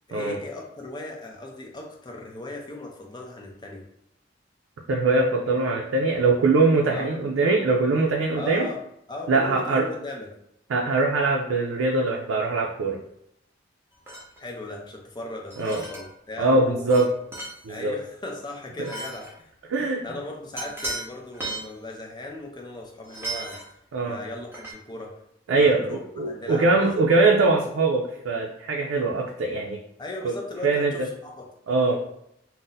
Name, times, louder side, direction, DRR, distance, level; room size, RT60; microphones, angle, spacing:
voice 1, 0.1-3.8 6.9-7.1 8.4-8.8 9.1-10.3 14.4-16.9 17.7-19.5 20.0-23.6 24.0-25.2 25.5-27.1 30.0-31.5, left 2 dB, 20° left, 0 dB, 0.5 m, -37 dB
voice 2, 4.9-8.7 9.3-9.8 10.7-13.0 15.6-15.8 16.4-17.1 17.6-18.0 19.7-20.0 23.9-24.2 25.5-25.8 26.2-29.8 30.2-30.3 30.6-30.9 31.7-32.0, right 3 dB, 80° right, -1 dB, 0.4 m, -22 dB
sound 1, 14.1-14.4 15.5-16.1 16.9-17.0 17.3-17.6 18.8-19.3 20.6-21.1 21.3-21.7 23.0-23.7 24.5-24.7, right 2 dB, 10° right, 0.7 m, -35 dB
2.6 x 2.0 x 3.9 m, 0.76 s
head